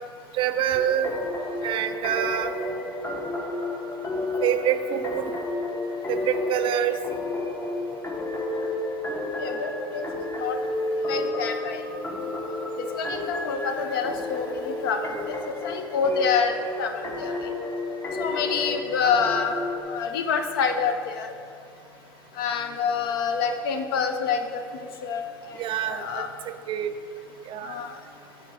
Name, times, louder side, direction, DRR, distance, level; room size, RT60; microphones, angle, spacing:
voice 1, 0.3-1.1 1.6-2.5 4.4-5.2 6.1-6.9 25.6-26.9 27.5-27.7, right 10 dB, 45° right, 10 dB, 0.5 m, -26 dB
sound 1, 0.7-19.8, left 2 dB, 20° left, 1.0 m, -31 dB
voice 2, 9.4-10.0 10.4-10.6 11.1-11.8 13.0-15.1 15.6-17.5 18.2-19.6 19.9-21.3 22.4-25.2 25.9-26.3 27.6-28.0, left 6 dB, 75° left, 7 dB, 0.6 m, -27 dB
8.7 x 3.8 x 4.7 m, 2.4 s
hypercardioid pair, 85°, 12 cm